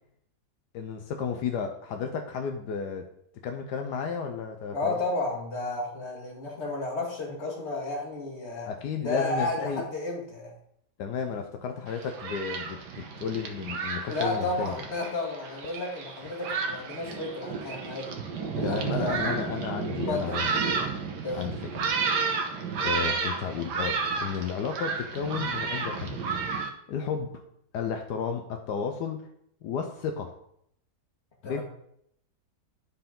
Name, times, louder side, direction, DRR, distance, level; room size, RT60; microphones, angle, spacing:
voice 1, 0.7-3.1 3.4-5.0 8.7-9.8 11.0-14.7 18.6-20.6 21.3-21.9 22.8-26.2 26.9-27.3 27.7-29.3 29.6-30.3 31.4-31.6, left 6 dB, 80° left, 5 dB, 1.3 m, -33 dB
voice 2, 4.7-8.7 9.0-10.5 14.1-18.1 18.6-19.3 20.1-20.7 21.2-21.5 31.4-31.6, left 2 dB, 40° left, -2 dB, 2.1 m, -32 dB
Thunderstorm, 11.9-26.7, right 5 dB, 85° right, 1.6 m, -32 dB
11.5 x 4.7 x 3.7 m, 0.72 s
omnidirectional pair, 1.8 m